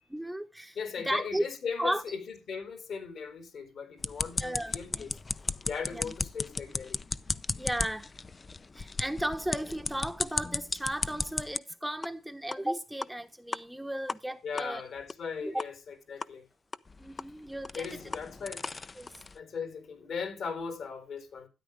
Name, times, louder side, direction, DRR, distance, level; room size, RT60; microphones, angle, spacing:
voice 1, 0.1-1.4 1.8-2.0 4.4-5.0 5.9-6.1 7.6-8.1 8.7-14.8 15.4-15.6 17.0-18.0 19.0-19.1, right 1 dB, 5° right, 0.9 m, -35 dB
voice 2, 0.7-5.1 5.6-7.0 14.4-15.7 16.1-16.4 17.7-18.7 19.3-21.5, left 6 dB, 60° left, 4.2 m, -38 dB
sound 1, 4.0-11.6 12.0-12.1 12.5-12.6 13.0-13.1 13.5-13.6 14.1-14.2 14.6-14.7 15.1-15.2 15.6-15.7 16.2-16.3 16.7-19.4, left 4 dB, 30° left, 0.6 m, -35 dB
13.0 x 9.9 x 3.4 m
cardioid pair, 90°, 0 cm